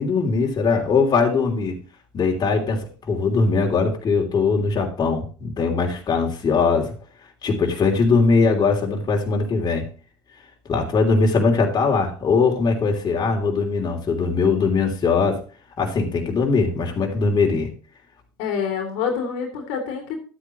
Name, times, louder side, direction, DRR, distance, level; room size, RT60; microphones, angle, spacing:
voice 1, 0.0-1.8 2.1-6.9 7.4-9.9 10.7-15.4 15.8-17.7, left 4 dB, 35° left, 1 dB, 3.2 m, -20 dB
voice 2, 18.4-20.2, left 6 dB, 70° left, 3 dB, 2.8 m, -26 dB
12.0 x 8.4 x 3.1 m, 0.38 s
hypercardioid pair, 80°, 11 cm